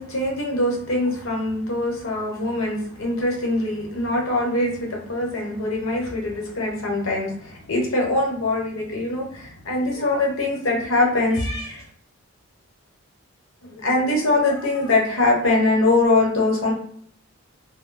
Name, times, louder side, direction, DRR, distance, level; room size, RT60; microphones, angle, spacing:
voice 1, 0.0-11.8 13.6-16.7, left 2 dB, 65° left, -1 dB, 1.0 m, -23 dB
2.5 x 2.1 x 3.7 m, 0.63 s
head